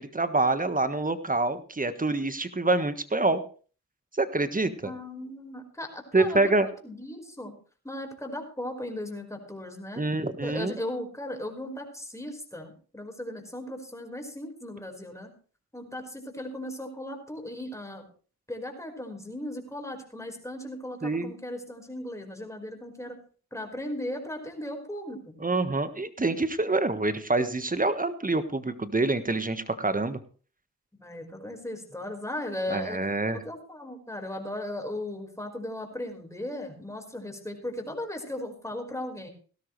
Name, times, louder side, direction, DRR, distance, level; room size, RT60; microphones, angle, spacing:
voice 1, 0.0-3.4 4.2-4.9 6.1-6.7 10.0-10.7 21.0-21.3 25.4-30.2 32.7-33.4, right 2 dB, 25° right, 11 dB, 1.5 m, -26 dB
voice 2, 4.8-7.5 7.8-10.0 10.4-15.3 15.7-18.0 18.5-23.1 23.5-25.3 30.9-33.0 33.4-39.3, left 1 dB, 10° left, 3 dB, 4.8 m, -37 dB
17.0 x 13.0 x 3.3 m, 0.40 s
cardioid pair, 45°, 34 cm